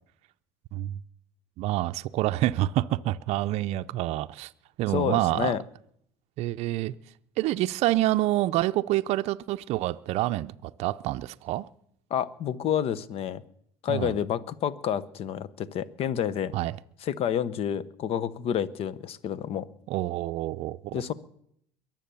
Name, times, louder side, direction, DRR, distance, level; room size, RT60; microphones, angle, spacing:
voice 1, 1.6-4.5 4.8-5.6 6.4-6.9 7.4-11.7 13.9-14.2 16.5-16.8 19.9-21.0, right 15 dB, 60° right, 0.5 m, -27 dB
voice 2, 4.9-5.6 12.1-13.4 13.8-16.5 17.0-19.7 20.9-21.1, left 9 dB, 55° left, 0.9 m, -29 dB
22.5 x 7.6 x 6.9 m
supercardioid pair, 90°, 12 cm